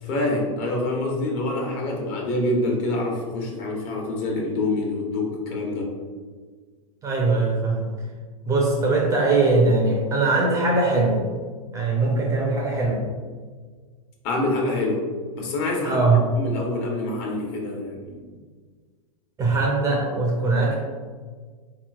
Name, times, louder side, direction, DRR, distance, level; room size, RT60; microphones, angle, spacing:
voice 1, 0.0-5.9 14.2-15.1 15.3-18.2, left 2 dB, 45° left, -1 dB, 0.9 m, -26 dB
voice 2, 7.0-7.9 8.5-11.2 11.7-13.1 15.8-16.3 19.4-20.7, right 3 dB, 15° right, -2 dB, 0.5 m, -21 dB
3.9 x 3.0 x 2.3 m, 1.5 s
hypercardioid pair, 130°, 19 cm